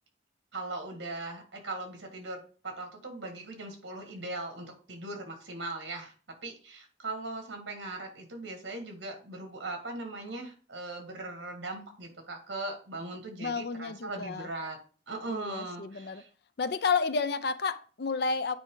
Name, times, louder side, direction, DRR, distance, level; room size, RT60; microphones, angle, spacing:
voice 1, 0.5-6.1 6.4-14.8 15.1-16.3, right 2 dB, 65° right, 2.1 m, -39 dB
voice 2, 13.4-14.5 15.3-16.2 16.6-18.6, left 5 dB, 55° left, 0.5 m, -31 dB
9.3 x 4.9 x 3.9 m
head